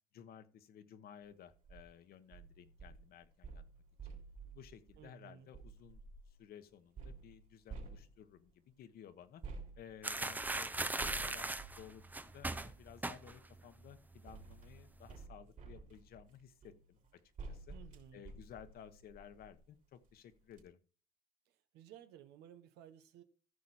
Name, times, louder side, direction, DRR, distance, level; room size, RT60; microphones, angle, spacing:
voice 1, 0.1-3.6 4.0-4.2 4.5-6.0 6.3-9.4 9.8-17.0 17.5-17.7 18.1-20.8, left 9 dB, 65° left, 10 dB, 1.2 m, -56 dB
sound 1, 1.5-1.8 2.3-6.4 7.0-8.5 9.4-12.8 13.7-19.7 20.1-20.2 20.5-20.6, right 4 dB, 50° right, 3.4 m, -52 dB
voice 2, 5.0-5.5 17.7-18.2 21.5-23.2, right 10 dB, 85° right, 10 dB, 1.2 m, -57 dB
sound 2, 10.0-13.6 13.9-14.2 14.5-15.1, right 2 dB, 10° right, 0.6 m, -39 dB
14.5 x 6.2 x 4.3 m, 0.39 s
cardioid pair, 110°, 17 cm